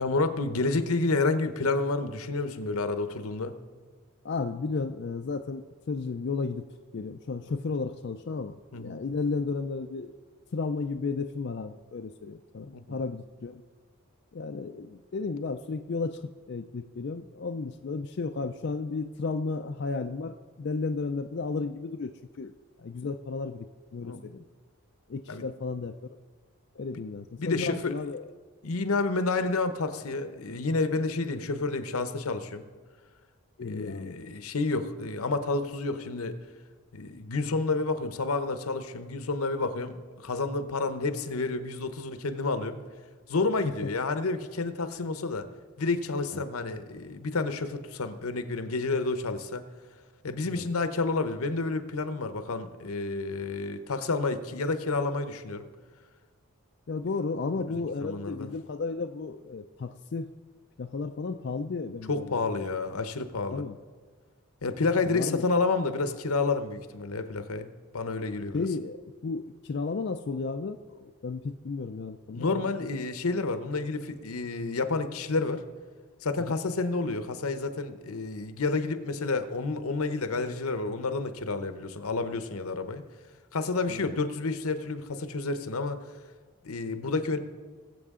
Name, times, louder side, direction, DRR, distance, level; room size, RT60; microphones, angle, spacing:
voice 1, 0.0-3.6 8.7-9.0 12.7-13.0 24.0-24.2 25.3-25.5 27.4-27.9 28.6-32.6 33.6-36.4 36.9-42.8 43.3-45.5 45.8-49.6 50.2-55.7 57.7-58.5 62.1-63.7 64.6-67.7 67.9-68.7 72.3-75.6 76.2-83.0 83.5-86.0 86.6-87.4, left 3 dB, 80° left, 10 dB, 0.8 m, -30 dB
voice 2, 4.2-6.7 6.9-10.1 10.5-13.6 14.3-16.2 16.5-22.1 22.4-22.5 22.8-23.7 23.9-24.4 25.1-25.9 26.8-28.2 33.6-34.1 50.5-50.7 56.9-60.3 60.8-62.7 63.5-63.7 65.1-65.4 68.5-72.5 72.9-73.0 83.9-84.2, left 4 dB, 50° left, 6 dB, 0.4 m, -33 dB
21.5 x 7.7 x 3.7 m, 1.5 s
head